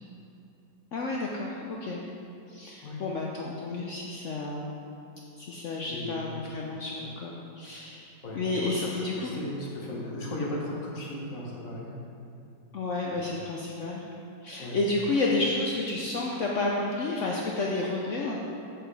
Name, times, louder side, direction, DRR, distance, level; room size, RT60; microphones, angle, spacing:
voice 1, 0.9-2.0 2.5-4.7 5.4-8.1 8.3-9.3 12.7-14.1 14.4-18.4, left 2 dB, 70° left, -2 dB, 0.7 m, -31 dB
voice 2, 5.9-6.2 8.2-8.4 8.7-8.9 9.1-11.9 14.6-14.8, left 1 dB, 50° left, -3 dB, 1.3 m, -36 dB
7.7 x 6.8 x 3.3 m, 2.6 s
omnidirectional pair, 2.0 m